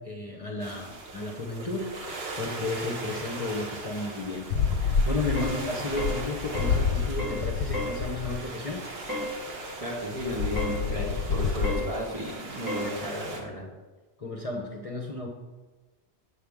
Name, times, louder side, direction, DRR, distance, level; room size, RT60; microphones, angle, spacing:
voice 1, 0.0-8.8 14.2-15.3, left 2 dB, 35° left, 0 dB, 0.9 m, -33 dB
sound 1, 0.6-13.4, right 2 dB, 70° right, 1.3 m, -40 dB
sound 2, 4.5-8.4 10.2-11.9, left 5 dB, 70° left, 0.8 m, -28 dB
sound 3, 5.4-5.6 6.0-6.2 6.5-6.8 7.2-7.4 7.7-8.0 9.1-9.3 10.6-10.8 11.6-11.9 12.7-12.9, equal, 20° left, 1.6 m, -33 dB
voice 2, 9.8-13.7, equal, 35° right, -4 dB, 1.7 m, -34 dB
8.3 x 6.6 x 3.6 m, 1.2 s
omnidirectional pair, 1.1 m